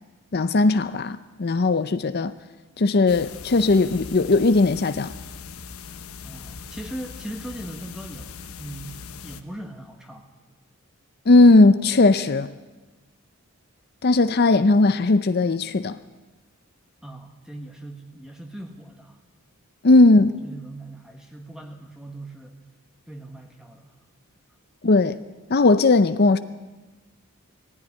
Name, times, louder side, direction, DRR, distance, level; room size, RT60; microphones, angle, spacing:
voice 1, 0.3-2.3 2.8-5.1 11.3-12.5 14.0-16.0 19.8-20.4 24.8-25.2 25.5-26.4, left 2 dB, 45° left, 0.6 m, -17 dB
sound 1, 3.1-9.4, left 5 dB, 85° left, 1.1 m, -40 dB
voice 2, 6.2-8.3 8.6-10.3 17.0-19.2 19.9-20.0 20.4-22.5 23.1-23.9, right 1 dB, 5° right, 1.3 m, -39 dB
19.5 x 14.5 x 9.8 m
head